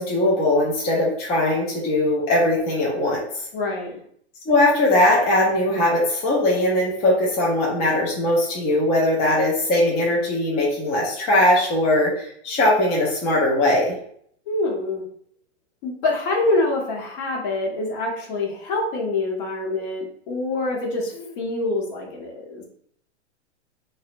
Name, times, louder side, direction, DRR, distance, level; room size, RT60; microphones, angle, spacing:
voice 1, 0.0-3.5 4.5-14.0, left 1 dB, 20° left, -5 dB, 0.4 m, -20 dB
voice 2, 3.5-3.9 14.5-15.0 15.8-22.6, left 2 dB, 50° left, -1 dB, 0.8 m, -25 dB
2.7 x 2.1 x 2.5 m, 0.64 s
hypercardioid pair, 125°, 35 cm